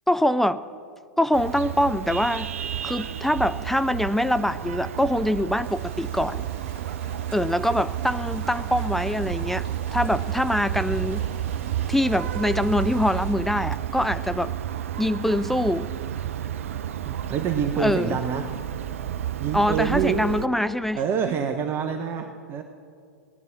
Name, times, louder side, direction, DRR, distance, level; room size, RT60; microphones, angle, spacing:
voice 1, 0.1-0.6 1.2-2.5 2.8-6.4 7.3-9.7 9.9-11.2 11.9-14.5 15.0-15.9 17.8-18.2 19.5-21.0, left 1 dB, 5° left, 12 dB, 0.3 m, -24 dB
Vehicle horn car horn honking, 1.3-20.5, right 11 dB, 65° right, 0.6 m, -31 dB
sound 1, 5.6-13.3, right 3 dB, 50° right, 2.8 m, -45 dB
voice 2, 17.0-18.5 19.4-20.2 20.6-22.6, right 7 dB, 30° right, 6 dB, 1.0 m, -27 dB
18.0 x 11.0 x 7.4 m, 2.3 s
figure-of-eight pair, 100°, 8 cm